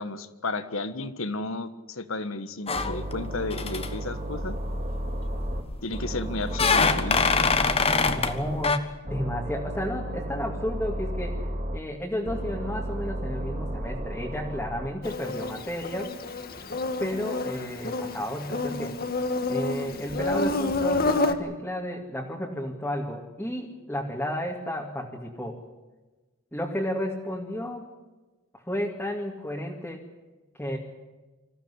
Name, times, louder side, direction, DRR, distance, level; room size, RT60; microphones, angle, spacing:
voice 1, 0.0-4.5 5.8-7.3, left 2 dB, 65° left, 11 dB, 1.5 m, -33 dB
sound 1, 2.7-3.3 3.5-3.9 5.2-5.8 6.5-8.4 8.6-8.8, left 4 dB, 25° left, 1.3 m, -24 dB
sound 2, 2.8-5.6 5.9-8.7 9.1-11.8 12.3-14.9, right 1 dB, 35° right, 2.2 m, -33 dB
voice 2, 8.2-11.4 11.7-16.1 17.0-19.0 19.5-25.6 26.5-27.9 28.7-30.1 30.6-30.8, left 1 dB, 10° left, -2 dB, 2.4 m, -32 dB
Insect, 15.0-21.3, left 2 dB, 45° left, 1.7 m, -29 dB
26.0 x 15.5 x 9.9 m, 1.2 s
head